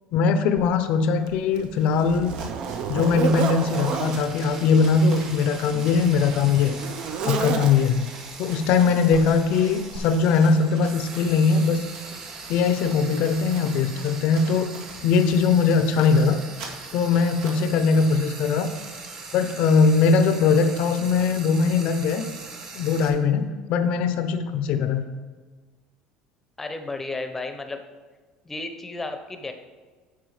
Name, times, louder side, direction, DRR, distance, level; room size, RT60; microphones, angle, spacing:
voice 1, 0.1-2.3 2.9-6.8 7.3-8.1 8.4-11.8 12.5-14.7 15.0-16.4 16.9-18.7 19.3-22.3 22.7-25.0, left 5 dB, 60° left, 9 dB, 0.6 m, -21 dB
Zipper (clothing), 0.6-0.7 1.3-4.2 5.2-8.1 9.1-9.3 9.9-10.0, right 6 dB, 50° right, 0.6 m, -30 dB
sound 1, 2.2-18.2, right 3 dB, 80° right, 1.9 m, -44 dB
Frying (food), 3.2-23.1, right 4 dB, 35° right, 1.2 m, -41 dB
voice 2, 26.6-27.8 28.4-29.5, left 2 dB, 10° left, 7 dB, 0.8 m, -33 dB
9.1 x 5.3 x 4.9 m, 1.4 s
cardioid pair, 140°, 2 cm